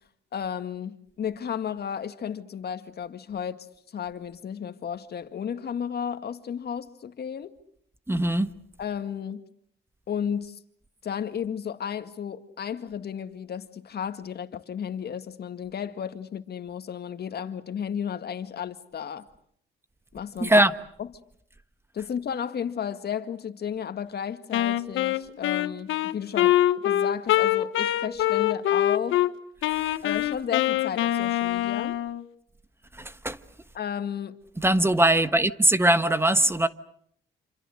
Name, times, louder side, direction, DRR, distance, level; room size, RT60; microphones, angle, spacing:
voice 1, 0.3-3.7 3.9-7.5 8.8-9.4 10.1-10.6 11.0-19.3 20.1-20.6 21.0-21.1 21.9-26.5 26.8-29.3 30.0-32.0 33.7-34.4, left 8 dB, 55° left, 2.0 m, -33 dB
voice 2, 8.1-8.5 20.4-20.7 32.9-33.4 34.6-36.7, right 1 dB, 10° right, 1.2 m, -21 dB
Wind instrument woodwind instrument, 24.5-29.3 29.6-32.2, left 13 dB, 85° left, 1.2 m, -24 dB
28.0 x 27.0 x 6.5 m
cardioid pair, 90°, 20 cm